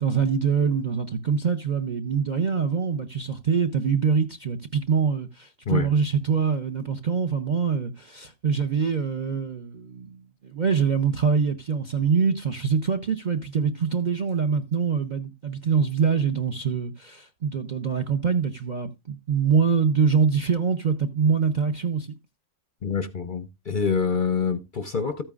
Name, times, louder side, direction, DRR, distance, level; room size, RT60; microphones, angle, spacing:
voice 1, 0.0-22.1, right 6 dB, 50° right, 0.6 m, -24 dB
voice 2, 22.8-25.2, left 5 dB, 50° left, 0.6 m, -26 dB
13.5 x 8.9 x 2.4 m
omnidirectional pair, 1.5 m